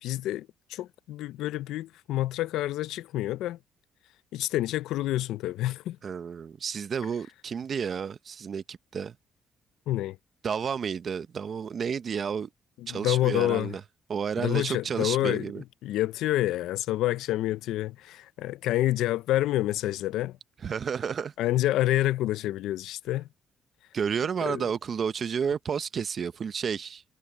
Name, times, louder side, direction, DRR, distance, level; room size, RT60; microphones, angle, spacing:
voice 1, 0.0-3.6 4.3-6.0 9.9-10.2 12.8-13.7 14.4-20.4 21.4-23.3 24.5-24.7, left 15 dB, 90° left, 0.5 m, -28 dB
voice 2, 6.0-9.1 10.4-12.5 12.9-13.8 14.1-15.6 20.6-21.3 23.9-27.0, right 7 dB, 50° right, 0.8 m, -31 dB
cardioid pair, 90°, 0 cm